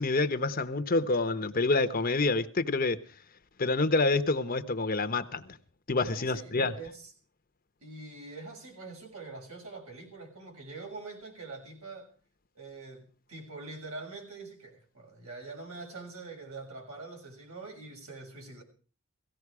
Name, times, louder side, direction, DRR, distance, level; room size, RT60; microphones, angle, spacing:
voice 1, 0.0-3.0 3.6-5.4 5.9-6.7, left 3 dB, 40° left, 1.0 m, -27 dB
voice 2, 6.1-7.1 7.8-12.1 12.5-18.6, right 3 dB, 80° right, 6.4 m, -44 dB
17.5 x 15.5 x 4.9 m
head